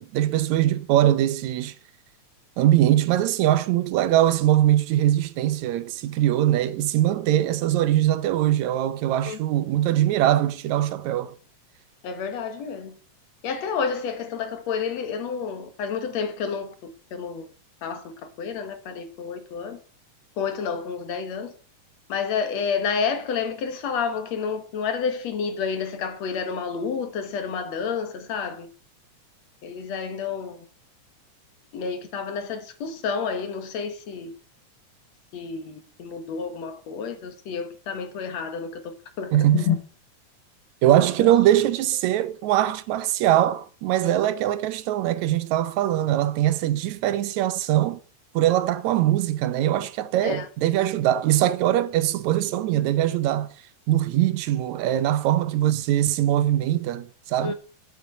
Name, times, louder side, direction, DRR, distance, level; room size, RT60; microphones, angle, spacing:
voice 1, 0.0-1.7 2.6-11.4 39.3-39.7 40.8-48.0 48.4-53.5 53.9-57.5, right 13 dB, 80° right, 2.1 m, -22 dB
voice 2, 12.0-13.0 13.4-16.7 17.1-17.5 17.8-18.0 18.4-19.8 20.4-21.5 22.1-28.7 29.6-30.6 31.7-34.3 35.3-39.8 41.2-41.3 50.2-50.5 57.4-57.5, left 6 dB, 65° left, 2.6 m, -29 dB
11.0 x 7.1 x 6.6 m
omnidirectional pair, 3.3 m